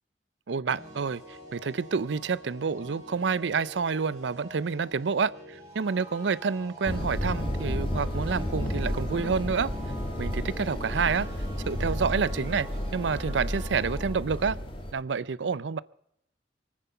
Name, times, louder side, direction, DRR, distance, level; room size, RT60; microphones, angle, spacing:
voice 1, 0.5-9.7 10.2-11.3 11.7-14.6 14.9-15.8, right 5 dB, 90° right, 0.5 m, -28 dB
sound 1, 0.7-14.1, equal, 20° right, 6.9 m, -47 dB
sound 2, 6.8-14.9, left 1 dB, 30° left, 2.4 m, -32 dB
25.0 x 9.7 x 5.5 m
head